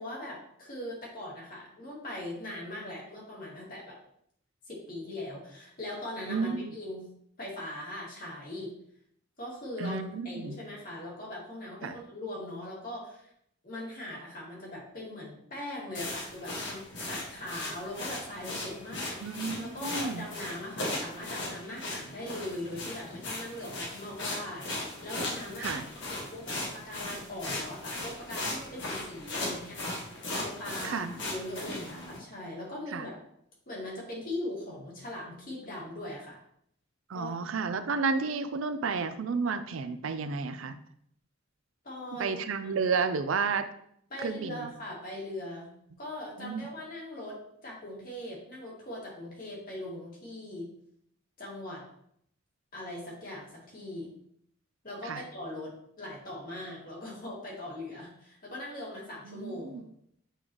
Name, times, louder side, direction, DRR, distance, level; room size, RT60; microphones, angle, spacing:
voice 1, 0.0-4.0 4.7-7.1 7.4-8.7 9.4-13.3 13.6-25.8 26.1-29.8 30.3-33.2 33.7-36.4 37.1-37.5 41.8-42.4 42.8-42.9 44.1-45.7 46.0-47.4 47.6-50.7 51.4-51.8 52.7-54.1 54.8-55.7 56.0-59.8, left 1 dB, 45° left, -5 dB, 2.1 m, -40 dB
voice 2, 6.3-6.8 9.8-10.6 11.8-11.9 19.2-20.3 25.6-25.9 30.8-31.1 32.9-33.1 37.1-40.8 42.2-43.7 44.2-44.7 46.4-46.6 55.0-55.2 59.3-59.8, right 5 dB, 85° right, 10 dB, 0.5 m, -31 dB
sound 1, 15.9-32.2, left 2 dB, 60° left, 1.6 m, -38 dB
8.2 x 3.9 x 3.0 m, 0.69 s
head